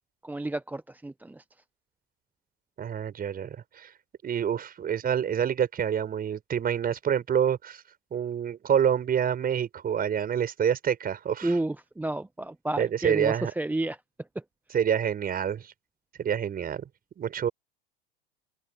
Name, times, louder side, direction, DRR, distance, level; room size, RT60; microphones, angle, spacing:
voice 1, 0.2-1.4 11.4-14.0 14.3-14.4, right 2 dB, 5° right, 0.9 m, -31 dB
voice 2, 2.8-3.9 4.2-7.8 8.1-11.5 12.8-13.5 14.7-15.7 16.2-16.9 17.2-17.5, right 8 dB, 30° right, 5.7 m, -27 dB
open air
hypercardioid pair, 90°, 30 cm